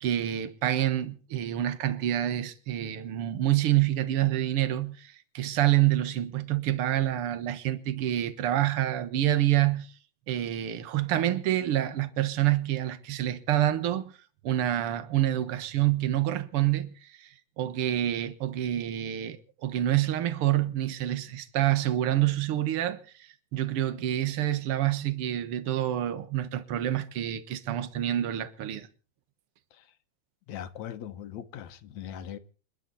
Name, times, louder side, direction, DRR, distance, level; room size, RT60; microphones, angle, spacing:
voice 1, 0.0-9.9 10.3-14.1 14.4-28.9, right 13 dB, 55° right, 2.0 m, -27 dB
voice 2, 30.5-32.4, left 10 dB, 75° left, 2.3 m, -40 dB
28.5 x 11.0 x 4.2 m
omnidirectional pair, 3.4 m